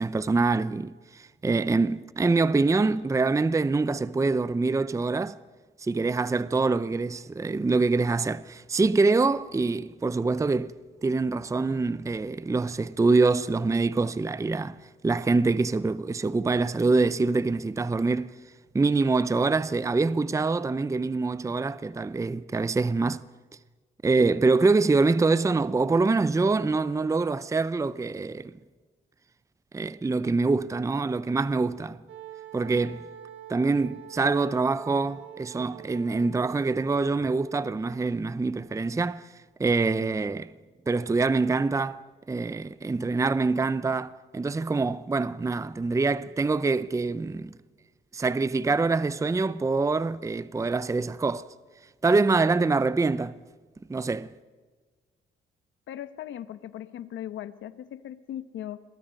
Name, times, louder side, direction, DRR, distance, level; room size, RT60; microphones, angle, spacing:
voice 1, 0.0-5.4 5.8-10.7 11.0-14.8 15.0-18.4 18.7-23.2 24.0-28.5 29.7-32.0 32.5-33.0 33.5-39.2 39.6-40.5 40.9-47.5 48.1-51.5 52.0-53.4 53.9-54.3, right 3 dB, 15° right, 0.6 m, -25 dB
Wind instrument woodwind instrument, 32.1-38.0, right 11 dB, 85° right, 2.9 m, -46 dB
voice 2, 55.9-58.8, left 11 dB, 75° left, 1.1 m, -38 dB
28.5 x 22.5 x 5.3 m
cardioid pair, 90°, 20 cm